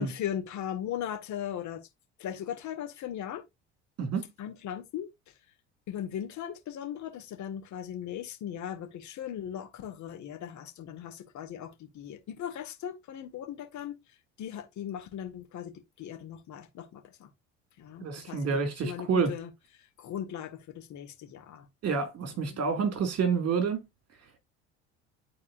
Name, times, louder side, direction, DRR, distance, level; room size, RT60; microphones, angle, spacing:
voice 1, 0.0-1.8 2.2-3.4 4.4-5.1 5.9-13.9 14.4-17.3 17.8-19.5 20.0-21.7 22.2-22.6, left 10 dB, 55° left, 2.0 m, -38 dB
voice 2, 18.0-19.3 21.8-23.8, right 5 dB, 45° right, 2.7 m, -28 dB
11.5 x 4.3 x 2.6 m
hypercardioid pair, 65°, 33 cm